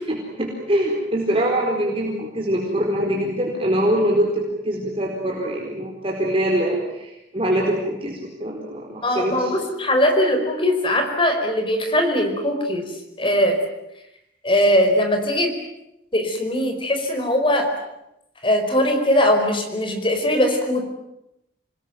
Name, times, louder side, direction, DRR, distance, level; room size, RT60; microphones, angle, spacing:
voice 1, 0.1-9.5, right 1 dB, 30° right, -2 dB, 4.6 m, -23 dB
voice 2, 9.0-13.6 14.4-15.5 16.1-17.7 18.4-20.8, left 1 dB, 30° left, 5 dB, 4.9 m, -20 dB
27.5 x 20.5 x 9.4 m, 0.87 s
head